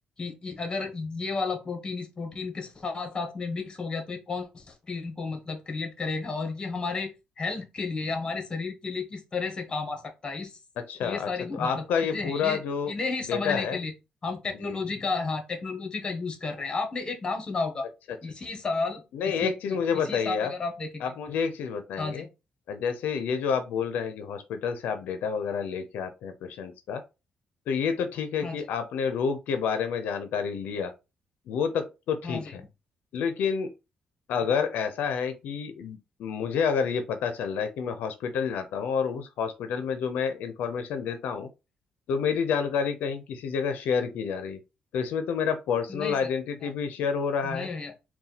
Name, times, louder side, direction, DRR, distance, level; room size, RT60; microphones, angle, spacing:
voice 1, 0.2-10.6 11.0-12.6 12.9-13.9 14.2-17.9 18.2-21.1 22.0-22.3 28.4-28.6 32.2-32.5 45.9-46.3 47.4-47.9, left 4 dB, 30° left, 1.1 m, -33 dB
voice 2, 10.9-12.9 13.3-13.8 14.6-14.8 19.1-20.5 21.0-22.3 22.7-27.0 27.7-30.9 31.5-32.6 33.1-33.7 34.3-41.5 42.1-44.6 44.9-47.7, left 6 dB, 85° left, 0.5 m, -29 dB
4.1 x 2.2 x 3.9 m
cardioid pair, 105°, 3 cm